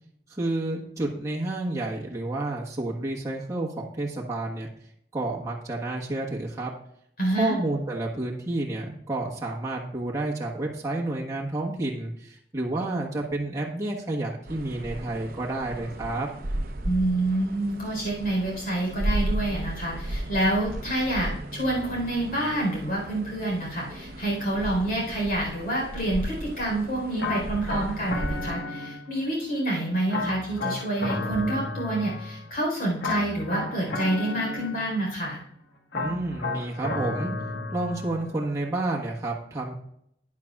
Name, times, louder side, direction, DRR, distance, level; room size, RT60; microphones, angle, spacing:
voice 1, 0.3-4.7 5.1-6.7 7.4-16.3 35.9-37.3 37.7-39.7, right 2 dB, 20° right, -3 dB, 1.4 m, -30 dB
voice 2, 7.2-7.6 16.8-35.4, right 1 dB, 55° left, -2 dB, 4.1 m, -27 dB
sound 1, 14.5-28.5, right 1 dB, 55° right, 0.8 m, -35 dB
sound 2, 27.2-29.3 30.1-32.5 33.0-35.1 35.9-38.3, left 2 dB, 70° left, 1.4 m, -33 dB
11.5 x 9.7 x 2.4 m, 0.70 s
head